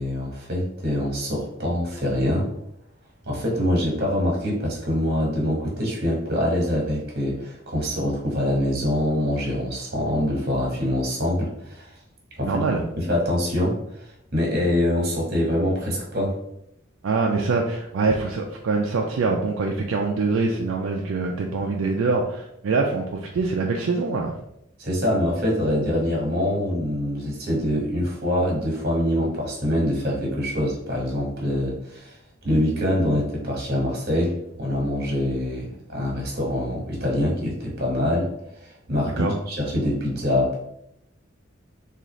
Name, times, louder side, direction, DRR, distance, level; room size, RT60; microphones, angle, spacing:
voice 1, 0.0-2.5 3.3-11.9 12.4-12.6 13.0-16.3 24.8-32.2 32.4-38.3 38.6-40.6, left 1 dB, 50° right, -2 dB, 1.2 m, -24 dB
voice 2, 12.4-12.8 17.0-24.3 39.2-39.4, right 3 dB, 75° right, 0 dB, 0.4 m, -24 dB
3.7 x 2.4 x 3.0 m, 0.78 s
head